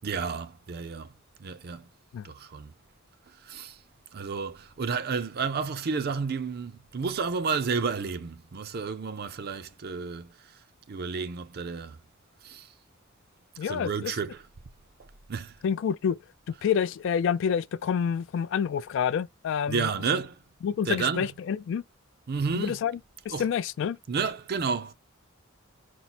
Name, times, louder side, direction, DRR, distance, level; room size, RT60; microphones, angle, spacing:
voice 1, 0.0-1.9 2.2-2.7 3.3-3.8 4.1-10.6 10.9-12.0 12.4-12.7 13.6-14.4 15.3-15.6 19.7-20.4 20.9-21.3 22.3-22.8 23.3-23.5 24.1-24.9, right 5 dB, 50° right, 0.5 m, -31 dB
voice 2, 13.6-14.1 15.6-16.2 16.5-19.9 20.6-21.8 22.5-22.9 23.3-24.0, left 7 dB, 60° left, 0.3 m, -28 dB
4.5 x 2.0 x 4.1 m
head